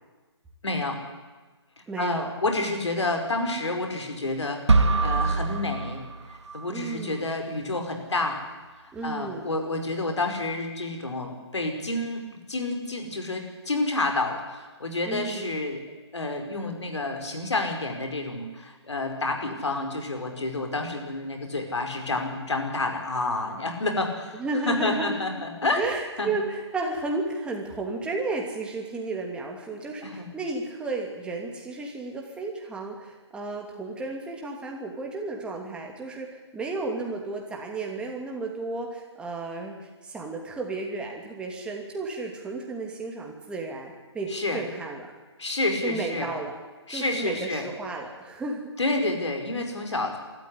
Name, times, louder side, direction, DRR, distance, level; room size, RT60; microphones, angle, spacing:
voice 1, 0.6-1.0 2.0-6.0 6.3-8.4 8.8-15.8 16.1-24.4 24.7-25.8 26.2-26.3 30.0-30.3 44.3-44.6 45.4-46.3 46.9-47.6 48.8-50.2, left 2 dB, 75° left, 4 dB, 5.1 m, -29 dB
voice 2, 1.9-2.3 6.7-7.2 8.9-9.5 15.1-15.4 24.3-25.5 25.8-39.8 40.0-45.1 45.8-46.5 46.9-48.7, right 3 dB, 5° right, 0 dB, 2.8 m, -33 dB
sound 1, 4.7-6.7, right 3 dB, 75° right, 2.1 m, -24 dB
24.5 x 13.5 x 9.9 m, 1.3 s
figure-of-eight pair, 145°, 15 cm